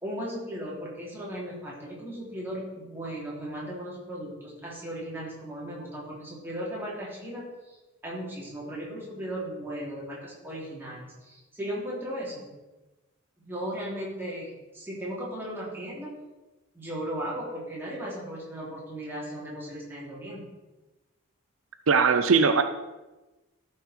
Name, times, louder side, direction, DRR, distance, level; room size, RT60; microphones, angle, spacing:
voice 1, 0.0-7.8 8.0-12.5 13.4-16.1 16.7-20.5, equal, 10° right, -6 dB, 3.0 m, -36 dB
voice 2, 21.9-22.6, right 5 dB, 75° right, 9 dB, 0.5 m, -20 dB
14.0 x 6.1 x 4.4 m, 1.1 s
head